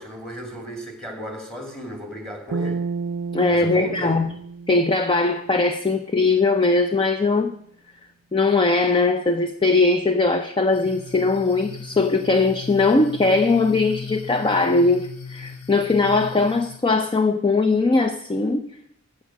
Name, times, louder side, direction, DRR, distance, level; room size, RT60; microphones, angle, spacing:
voice 1, 0.0-2.8 3.5-4.2, left 1 dB, 5° left, 4 dB, 2.5 m, -34 dB
sound 1, 2.5-5.9, right 4 dB, 75° right, 0.4 m, -31 dB
voice 2, 3.3-4.3 4.7-7.5 8.3-18.7, left 3 dB, 25° left, 9 dB, 0.5 m, -20 dB
sound 2, 10.7-16.8, left 5 dB, 85° left, 1.3 m, -38 dB
15.5 x 6.4 x 7.3 m, 0.71 s
head